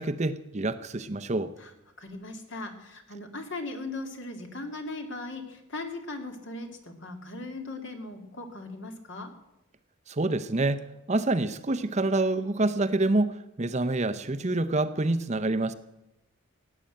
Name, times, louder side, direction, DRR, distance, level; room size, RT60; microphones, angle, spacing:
voice 1, 0.0-1.5 10.1-15.7, right 2 dB, 30° right, 10 dB, 0.6 m, -27 dB
voice 2, 2.0-9.3, left 2 dB, 55° left, 5 dB, 2.3 m, -38 dB
17.0 x 9.1 x 8.6 m, 0.90 s
head